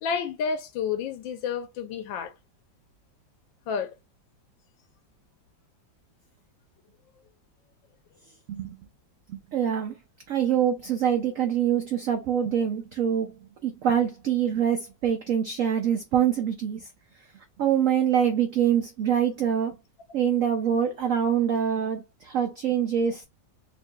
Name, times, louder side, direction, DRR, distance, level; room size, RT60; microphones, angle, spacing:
voice 1, 0.0-2.3 3.7-3.9, left 6 dB, 85° left, 1.4 m, -30 dB
voice 2, 9.3-9.9 10.3-13.4 13.6-16.9 17.6-19.8 20.1-23.2, right 9 dB, 90° right, 0.7 m, -25 dB
4.6 x 2.6 x 2.3 m
omnidirectional pair, 2.0 m